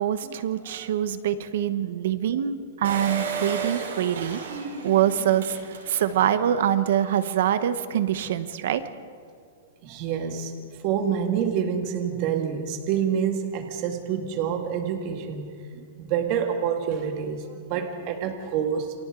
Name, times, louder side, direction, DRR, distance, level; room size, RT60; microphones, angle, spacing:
voice 1, 0.0-4.4 4.8-8.8, right 10 dB, 55° right, 11 dB, 1.0 m, -24 dB
Engine, 2.8-6.3 6.8-6.9 7.1-7.2, right 5 dB, 75° right, 6.7 m, -33 dB
voice 2, 9.8-10.5 10.8-18.9, right 8 dB, 35° right, 4 dB, 1.8 m, -27 dB
29.0 x 25.0 x 3.8 m, 2.1 s
supercardioid pair, 170°, 0 cm